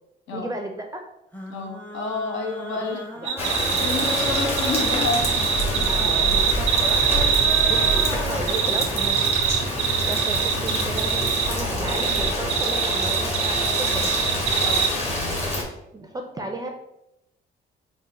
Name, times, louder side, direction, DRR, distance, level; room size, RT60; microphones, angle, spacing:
voice 1, 0.3-1.0 2.9-3.3 5.9-7.3 7.7-9.2 10.0-14.1 15.9-16.7, right 2 dB, 20° right, 3 dB, 0.4 m, -34 dB
sound 1, 1.3-8.4, equal, 10° left, 0.7 m, -36 dB
voice 2, 1.5-3.3 3.8-5.9 7.7-7.8 14.6-14.9, left 3 dB, 75° left, 1 dB, 0.8 m, -30 dB
sound 2, 3.3-8.1 8.5-11.5 11.9-14.9, right 8 dB, 90° right, 0.5 m, -23 dB
Rain, 3.4-15.6, left 1 dB, 30° left, 1.1 m, -26 dB
3.6 x 2.0 x 4.1 m, 0.84 s
cardioid pair, 90°, 20 cm